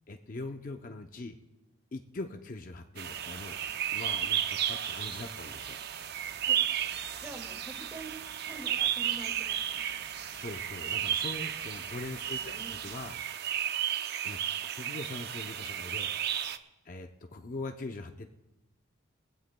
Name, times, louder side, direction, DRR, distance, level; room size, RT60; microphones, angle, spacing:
voice 1, 0.1-1.4 1.9-3.6 3.9-5.8 10.3-13.2 14.2-16.1 16.8-18.3, left 2 dB, 45° left, 5 dB, 0.6 m, -42 dB
sound 1, 3.0-16.6, right 10 dB, 55° right, 0.6 m, -33 dB
sound 2, 3.1-13.2, right 4 dB, 80° right, 1.9 m, -52 dB
voice 2, 7.1-8.1 8.4-10.1 12.3-12.8, right 2 dB, 10° right, 2 dB, 2.0 m, -47 dB
21.5 x 15.5 x 2.2 m, 1.0 s
head